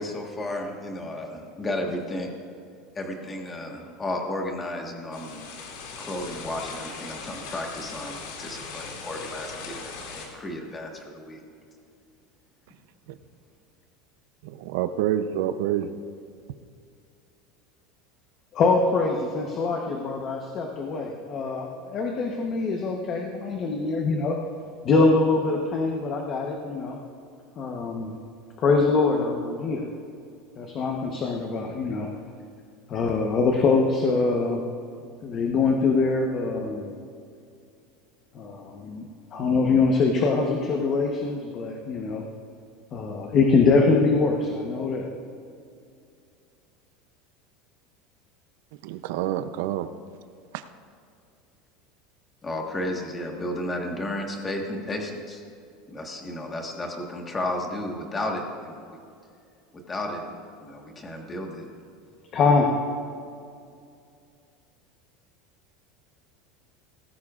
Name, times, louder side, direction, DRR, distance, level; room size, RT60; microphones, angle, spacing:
voice 1, 0.0-2.4 2.9-5.4 6.0-11.4 52.4-55.4 55.9-58.9 59.7-60.3 60.6-61.7, left 1 dB, 15° left, 1 dB, 1.4 m, -33 dB
sound 1, 5.1-10.3, left 5 dB, 85° left, 2.5 m, -39 dB
voice 2, 14.4-15.9 48.8-49.9 50.5-50.6, right 11 dB, 70° right, 11 dB, 0.6 m, -27 dB
voice 3, 18.5-24.4 24.8-27.0 27.6-28.2 28.6-29.9 30.6-32.1 32.9-34.6 35.2-36.9 38.3-39.0 39.3-42.2 42.9-45.1 62.3-62.7, left 4 dB, 30° left, 1 dB, 1.0 m, -23 dB
18.5 x 15.5 x 2.5 m, 2.4 s
cardioid pair, 165°, 0 cm